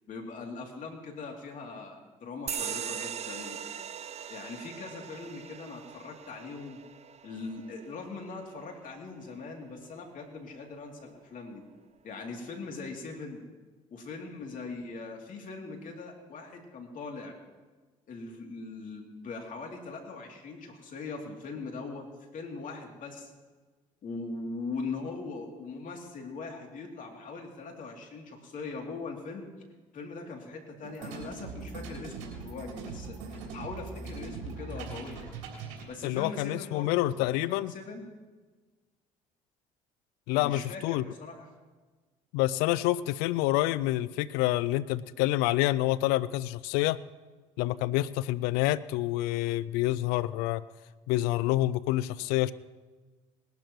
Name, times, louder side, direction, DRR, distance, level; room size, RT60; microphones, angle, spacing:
voice 1, 0.1-3.7 4.3-6.8 7.2-11.6 12.0-13.4 13.9-17.4 18.1-23.3 24.0-29.5 29.9-35.3 35.9-38.1 40.4-41.5, left 4 dB, 55° left, 1 dB, 3.0 m, -41 dB
sound 1, 2.5-9.5, right 8 dB, 40° right, 0.6 m, -40 dB
sound 2, 30.8-35.8, right 4 dB, 85° right, 3.4 m, -41 dB
voice 2, 36.0-37.7 40.3-41.0 42.3-47.0 47.6-50.6 51.1-52.5, left 16 dB, 80° left, 18 dB, 0.4 m, -27 dB
20.5 x 12.0 x 3.1 m, 1.3 s
hypercardioid pair, 60°, 16 cm